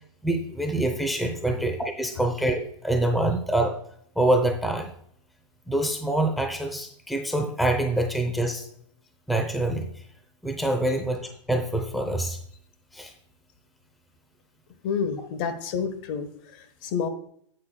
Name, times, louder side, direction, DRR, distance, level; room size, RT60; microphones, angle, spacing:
voice 1, 0.2-3.7 4.2-4.9 5.7-8.7 9.3-10.0 10.4-12.4 12.9-13.1, right 1 dB, ahead, 5 dB, 0.7 m, -25 dB
voice 2, 14.8-17.1, left 6 dB, 45° left, 9 dB, 1.3 m, -29 dB
9.9 x 8.4 x 2.3 m, 0.67 s
hypercardioid pair, 135°, 16 cm